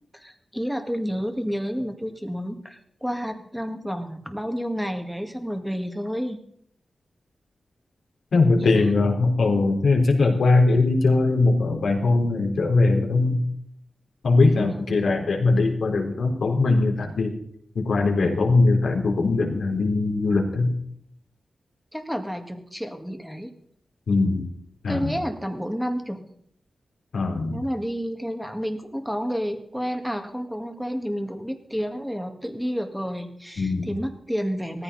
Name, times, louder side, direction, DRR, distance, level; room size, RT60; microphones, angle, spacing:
voice 1, 0.1-6.4 8.3-8.9 14.5-15.0 21.9-23.5 24.9-26.2 27.5-34.8, equal, ahead, 5 dB, 2.0 m, -30 dB
voice 2, 8.3-13.4 14.2-17.3 17.8-20.7 24.1-24.5 24.8-25.1 27.1-27.6 33.6-33.9, left 3 dB, 80° left, 1 dB, 3.5 m, -21 dB
17.5 x 14.5 x 4.2 m, 0.68 s
cardioid pair, 70°, 0 cm